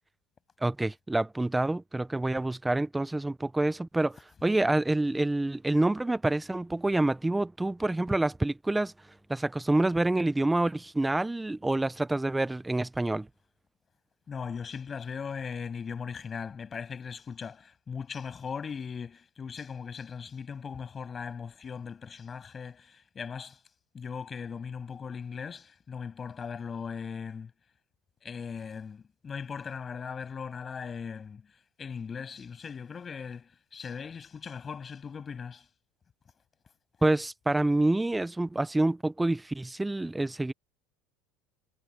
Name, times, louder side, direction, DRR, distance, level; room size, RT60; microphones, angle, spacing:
voice 1, 0.6-8.9 9.3-13.3 37.0-40.5, right 2 dB, 5° right, 0.5 m, -27 dB
voice 2, 14.3-23.6 23.9-27.5 28.2-31.4 31.8-35.6, left 6 dB, 20° left, 7.1 m, -39 dB
cardioid pair, 170°, 0 cm